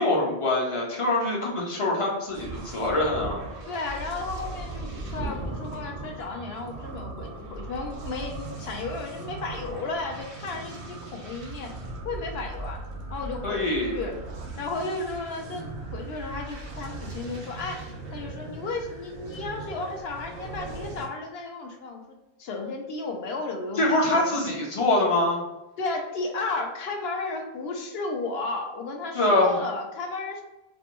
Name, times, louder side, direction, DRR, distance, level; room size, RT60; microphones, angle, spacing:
voice 1, 0.0-3.4 13.4-14.0 23.8-25.4 29.1-29.6, left 2 dB, 35° left, -2 dB, 0.6 m, -24 dB
Thunder, 2.3-7.4 7.9-8.0 9.3-9.4, right 2 dB, 55° right, 0.4 m, -40 dB
sound 1, 2.3-21.1, right 2 dB, 80° right, 0.9 m, -39 dB
voice 2, 3.7-11.7 12.0-12.8 13.1-14.2 14.6-22.0 22.4-24.3 25.8-30.4, left 3 dB, 70° left, 2 dB, 0.8 m, -33 dB
2.5 x 2.2 x 2.8 m, 0.99 s
omnidirectional pair, 1.1 m